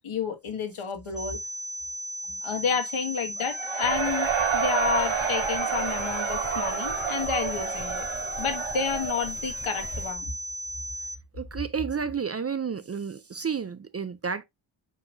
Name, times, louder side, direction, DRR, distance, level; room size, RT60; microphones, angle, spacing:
voice 1, 0.0-1.4 2.4-4.3 4.5-8.1 8.4-10.3, left 6 dB, 85° left, 1.8 m, -30 dB
sound 1, 1.2-11.2, equal, 5° left, 0.7 m, -36 dB
Cheering / Crowd, 3.4-10.1, right 7 dB, 75° right, 2.0 m, -30 dB
sound 2, 3.8-10.1, left 2 dB, 50° left, 3.2 m, -44 dB
voice 2, 11.3-14.4, right 6 dB, 35° right, 0.4 m, -31 dB
7.3 x 5.4 x 2.5 m
wide cardioid pair, 175°, 48 cm